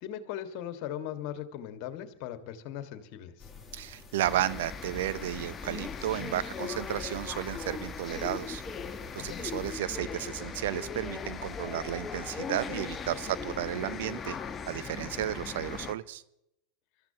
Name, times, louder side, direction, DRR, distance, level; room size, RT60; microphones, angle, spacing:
voice 1, 0.0-3.5 6.2-6.3 9.3-9.4, left 10 dB, 55° left, 9 dB, 1.7 m, -39 dB
sound 1, 3.4-9.7, left 4 dB, 10° left, 6.0 m, -50 dB
voice 2, 3.7-8.6 9.2-14.4 14.7-16.2, right 13 dB, 70° right, 16 dB, 0.6 m, -33 dB
sound 2, 4.2-15.9, left 5 dB, 25° left, 1.0 m, -39 dB
27.0 x 13.5 x 2.9 m, 0.82 s
hypercardioid pair, 95°, 0 cm